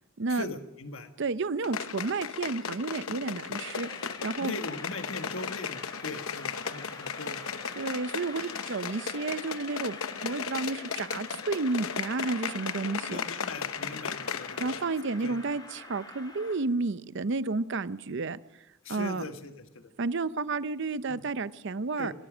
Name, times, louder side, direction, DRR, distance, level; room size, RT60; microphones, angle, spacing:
voice 1, 0.3-1.1 4.4-7.9 13.1-14.8 15.2-15.3 18.8-19.9 21.1-21.2 22.0-22.1, left 2 dB, 70° left, 7 dB, 1.5 m, -40 dB
voice 2, 1.2-3.9 4.2-4.5 7.8-10.0 10.2-13.2 14.6-18.4 18.9-19.2 20.0-22.1, right 3 dB, 60° right, 15 dB, 0.6 m, -31 dB
sound 1, 1.6-14.9 15.2-15.3, left 6 dB, 90° left, 0.9 m, -36 dB
Train, 3.5-16.6, left 2 dB, 20° left, 2.6 m, -46 dB
24.0 x 17.5 x 6.2 m, 1.0 s
head